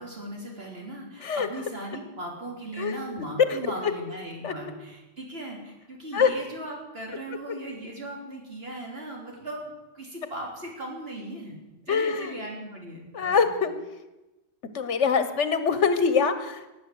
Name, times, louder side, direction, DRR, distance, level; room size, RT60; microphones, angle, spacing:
voice 1, 0.0-11.6 11.9-13.5, right 1 dB, 55° right, -1 dB, 3.9 m, -38 dB
voice 2, 3.5-3.9 4.4-4.5 6.1-6.3 11.9-12.3 13.1-13.7 14.7-16.7, left 5 dB, 80° left, 11 dB, 1.5 m, -24 dB
18.0 x 8.4 x 7.9 m, 1.0 s
omnidirectional pair, 1.2 m